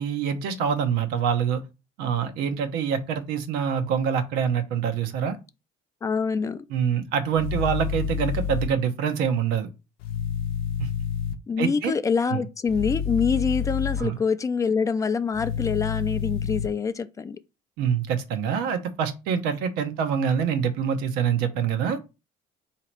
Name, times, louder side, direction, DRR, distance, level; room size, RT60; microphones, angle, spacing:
voice 1, 0.0-1.6 2.0-5.4 6.7-9.7 10.8-10.9 11.6-11.9 12.3-12.4 14.0-14.2 17.8-22.0, right 7 dB, 85° right, 0.8 m, -25 dB
voice 2, 6.0-6.6 11.5-17.4, left 5 dB, 20° left, 0.3 m, -25 dB
sound 1, 7.3-8.7 10.0-11.3 12.7-14.0 15.3-16.7, left 7 dB, 85° left, 0.6 m, -28 dB
3.9 x 2.9 x 4.5 m
cardioid pair, 125°, 15 cm